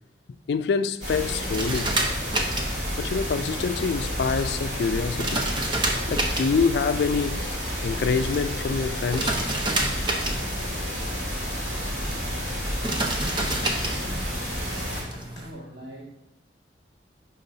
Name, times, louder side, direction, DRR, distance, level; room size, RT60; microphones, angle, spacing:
voice 1, 0.5-2.0 3.0-5.5 6.1-9.4, left 5 dB, 65° left, 0.3 m, -26 dB
sound 1, 1.0-15.0, equal, 40° right, 2.5 m, -30 dB
sound 2, 1.5-15.5, right 2 dB, 25° right, 0.8 m, -31 dB
sound 3, 11.3-15.4, equal, 20° left, 2.0 m, -43 dB
voice 2, 15.3-16.3, right 1 dB, 85° right, 1.9 m, -43 dB
11.0 x 3.9 x 2.7 m
head